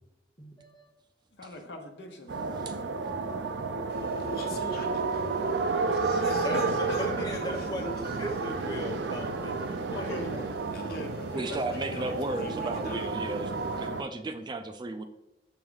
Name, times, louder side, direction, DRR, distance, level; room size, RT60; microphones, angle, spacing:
voice 1, 0.4-0.9 6.4-7.9 8.2-10.1, left 1 dB, 20° left, 1 dB, 1.0 m, -38 dB
voice 2, 1.3-2.8 4.6-4.7 6.3-7.4 9.9-10.6 10.8-12.3, equal, 85° left, 3 dB, 1.0 m, -40 dB
sound 1, 2.3-14.0, right 4 dB, 90° right, 0.5 m, -31 dB
Fixed-wing aircraft airplane, 3.9-13.9, right 1 dB, 70° right, 1.0 m, -50 dB
voice 3, 4.2-5.4 5.9-8.4 10.7-11.1 11.7-13.2, left 1 dB, 60° left, 2 dB, 1.1 m, -44 dB
voice 4, 11.3-15.0, right 2 dB, 25° right, 8 dB, 0.3 m, -34 dB
6.1 x 4.7 x 3.9 m, 0.99 s
head